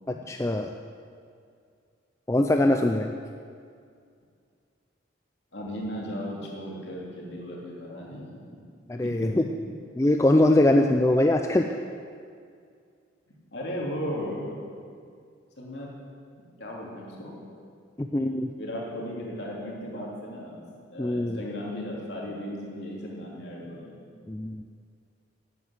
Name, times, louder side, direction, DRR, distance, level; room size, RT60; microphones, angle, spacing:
voice 1, 0.1-0.7 2.3-3.1 8.9-9.4 10.0-11.7 18.0-18.5 21.0-21.4 24.3-24.6, left 1 dB, 15° left, 4 dB, 0.4 m, -22 dB
voice 2, 5.5-8.6 9.0-9.7 13.5-14.6 15.6-15.9 16.6-17.4 18.6-20.6 20.9-24.0, equal, 60° left, -3 dB, 3.1 m, -36 dB
12.0 x 9.1 x 8.0 m, 2.2 s
head